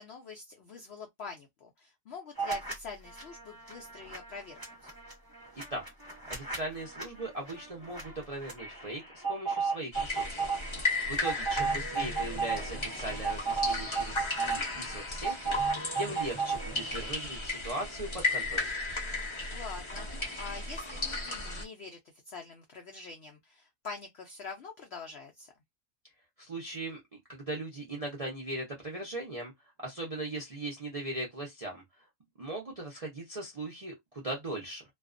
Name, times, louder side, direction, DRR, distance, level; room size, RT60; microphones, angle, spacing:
voice 1, 0.0-4.6 11.2-11.5 19.5-22.0 22.3-25.5, left 5 dB, 80° left, 0.5 m, -45 dB
sound 1, 2.4-2.7 3.1-17.1, right 5 dB, 15° right, 0.9 m, -35 dB
voice 2, 6.3-10.5 10.8-18.7 26.4-27.0 27.3-29.5 29.8-31.8 32.4-34.8, right 1 dB, 55° right, 0.4 m, -39 dB
sound 2, 9.9-21.6, left 3 dB, 30° left, 0.5 m, -35 dB
2.4 x 2.2 x 2.4 m
omnidirectional pair, 1.7 m